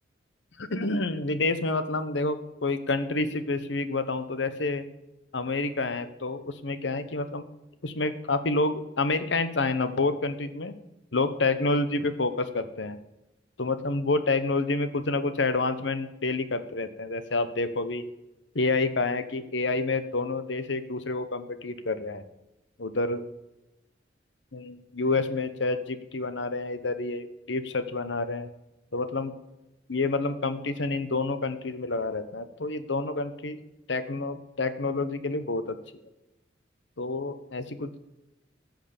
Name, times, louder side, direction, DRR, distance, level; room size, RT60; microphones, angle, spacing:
voice 1, 0.6-4.8 5.3-7.5 7.8-10.8 11.1-13.0 13.6-18.0 18.5-22.2 22.8-23.2 24.5-28.5 28.9-29.3 29.9-33.6 33.9-35.8 37.0-38.0, left 3 dB, 75° left, 11 dB, 1.1 m, -28 dB
14.0 x 6.5 x 6.7 m, 0.95 s
head